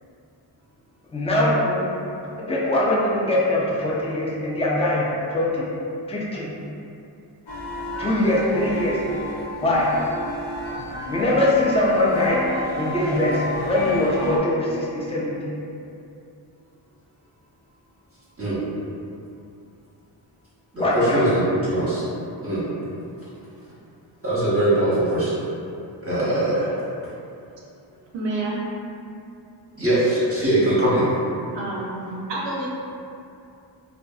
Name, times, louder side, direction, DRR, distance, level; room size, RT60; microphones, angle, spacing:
voice 1, 1.1-1.9 2.4-5.7 6.1-6.5 8.0-9.0 9.6-9.9 11.1-12.4 12.8-15.5 20.8-21.2, left 1 dB, 15° left, -6 dB, 0.5 m, -22 dB
sound 1, 7.5-14.4, left 1 dB, 85° left, 0.6 m, -31 dB
voice 2, 20.7-21.4 21.7-22.0 22.4-22.7 24.2-25.4 26.0-26.7 29.8-31.1, right 1 dB, 30° right, -10 dB, 0.8 m, -21 dB
voice 3, 28.1-28.6 31.5-32.7, right 2 dB, 70° right, -5 dB, 0.6 m, -28 dB
2.5 x 2.4 x 2.3 m, 2.6 s
cardioid pair, 60°, 46 cm